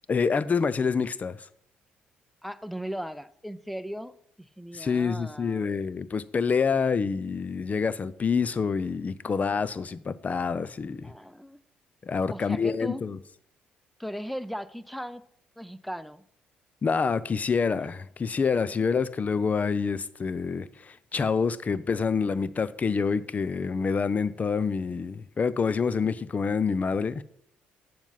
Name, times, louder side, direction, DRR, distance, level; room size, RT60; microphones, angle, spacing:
voice 1, 0.1-1.4 4.7-11.1 12.0-13.2 16.8-27.2, left 5 dB, 40° left, 0.6 m, -27 dB
voice 2, 2.4-5.7 11.0-11.6 12.3-13.0 14.0-15.2 15.6-16.2, equal, ahead, 0.7 m, -37 dB
9.4 x 7.2 x 5.7 m
supercardioid pair, 60°, 4 cm